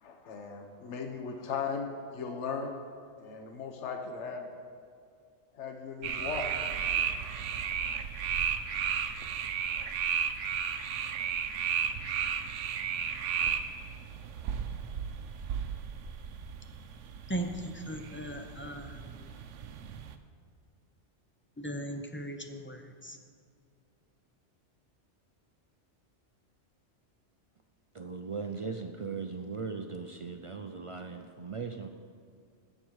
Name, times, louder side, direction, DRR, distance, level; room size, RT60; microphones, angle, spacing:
voice 1, 0.0-1.9 2.1-2.8 3.2-4.5 5.5-6.4 6.9-7.1 7.6-7.7, left 5 dB, 80° left, 4 dB, 1.1 m, -37 dB
sound 1, 6.0-20.2, right 7 dB, 85° right, 1.0 m, -34 dB
voice 2, 17.3-19.3 21.6-23.2, right 1 dB, 15° left, 5 dB, 0.5 m, -38 dB
voice 3, 28.0-31.9, right 5 dB, 55° right, 5 dB, 0.3 m, -38 dB
15.0 x 6.6 x 4.7 m, 2.3 s
omnidirectional pair, 1.2 m